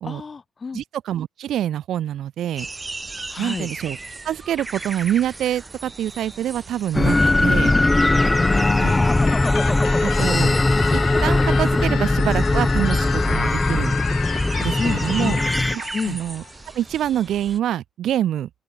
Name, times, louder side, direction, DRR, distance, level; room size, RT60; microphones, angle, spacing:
voice 1, 0.0-0.8 3.3-3.7 8.4-9.4 14.8-15.4 15.9-16.2, left 5 dB, 35° left, 1.3 m, -28 dB
voice 2, 0.7-2.7 3.4-4.0 4.2-7.8 8.8-8.9 10.0-10.6 10.9-14.0 14.6-15.4 15.7-16.4 16.7-18.5, right 11 dB, 65° right, 0.8 m, -26 dB
sound 1, 2.6-17.6, right 3 dB, 20° right, 0.8 m, -37 dB
sound 2, 6.9-15.7, left 2 dB, 15° left, 0.4 m, -19 dB
sound 3, 9.3-16.8, left 12 dB, 70° left, 0.8 m, -33 dB
open air
cardioid pair, 80°, 0 cm